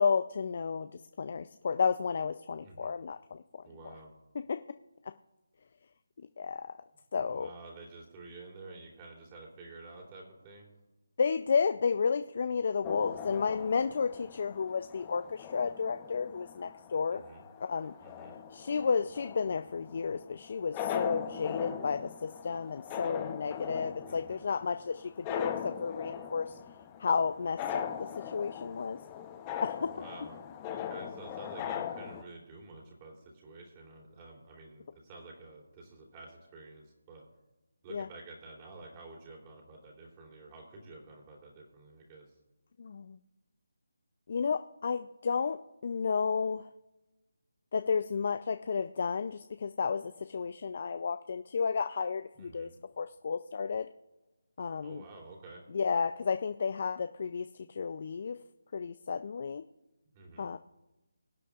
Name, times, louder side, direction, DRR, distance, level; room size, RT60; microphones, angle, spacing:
voice 1, 0.0-3.4 4.5-4.6 6.4-6.7 7.1-7.5 11.2-17.2 17.7-17.9 18.5-26.6 27.0-29.0 29.6-29.9 37.9-38.1 42.8-43.2 44.3-46.7 47.7-52.7 53.0-53.9 54.6-55.0 55.7-58.4 58.7-59.6 60.4-60.6, left 5 dB, 45° left, 10 dB, 0.4 m, -32 dB
voice 2, 2.6-2.9 3.6-4.1 7.2-10.7 17.1-17.4 18.0-18.3 24.0-24.4 29.8-37.2 37.8-42.4 52.4-52.7 54.8-55.6 60.1-60.5, right 3 dB, 25° right, -1 dB, 3.0 m, -50 dB
sound 1, 12.8-32.2, left 9 dB, 20° left, 0.8 m, -41 dB
23.0 x 8.4 x 2.4 m, 1.0 s
figure-of-eight pair, 160°, 0 cm